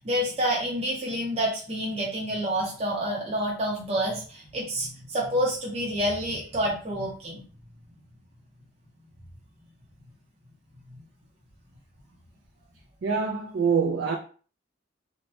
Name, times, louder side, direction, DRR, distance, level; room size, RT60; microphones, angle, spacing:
voice 1, 0.0-7.4, equal, 35° right, 0.7 m, -28 dB
voice 2, 13.0-14.2, right 5 dB, 75° right, 0.4 m, -25 dB
3.1 x 2.1 x 2.9 m
head